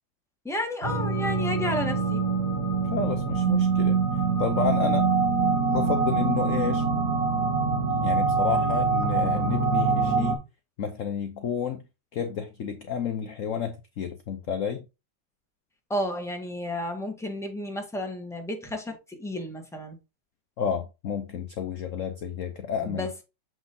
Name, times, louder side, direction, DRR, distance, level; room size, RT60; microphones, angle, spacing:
voice 1, 0.4-2.2 15.9-20.0 22.8-23.2, left 1 dB, ahead, 1.6 m, -32 dB
sound 1, 0.8-10.3, right 4 dB, 60° right, 2.3 m, -24 dB
voice 2, 2.9-4.0 4.4-5.1 5.7-6.8 8.0-10.4 10.8-11.8 12.1-14.9 20.6-23.2, left 7 dB, 55° left, 1.0 m, -30 dB
7.1 x 6.1 x 2.7 m
omnidirectional pair, 2.0 m